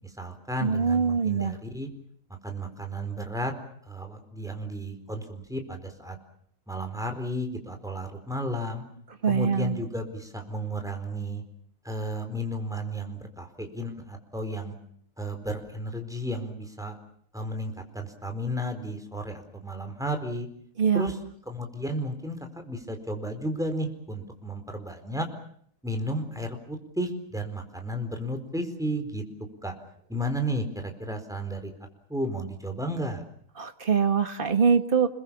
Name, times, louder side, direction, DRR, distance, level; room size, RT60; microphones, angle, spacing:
voice 1, 0.0-1.9 2.4-3.5 3.9-6.2 6.7-8.8 9.3-11.4 11.8-14.7 15.2-17.0 17.3-20.5 20.9-21.2 21.5-25.3 25.8-29.2 29.6-29.7 30.1-31.7 32.1-33.2, equal, ahead, 5 dB, 4.4 m, -33 dB
voice 2, 0.6-1.5 9.2-9.8 20.8-21.1 33.6-35.1, right 6 dB, 40° right, 8 dB, 1.8 m, -23 dB
29.0 x 22.5 x 7.1 m, 0.64 s
omnidirectional pair, 1.4 m